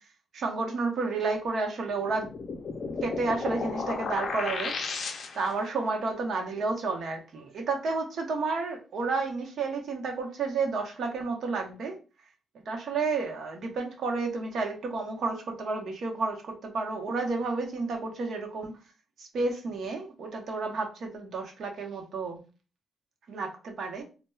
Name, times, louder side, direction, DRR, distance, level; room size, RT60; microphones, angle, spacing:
voice 1, 0.3-2.3 3.0-4.7 5.3-12.0 12.7-18.7 19.2-22.4 23.3-24.0, right 3 dB, 65° right, 2 dB, 0.8 m, -31 dB
sound 1, 2.0-5.7, left 4 dB, 50° left, 0.5 m, -34 dB
4.2 x 2.1 x 2.3 m, 0.33 s
cardioid pair, 110°, 0 cm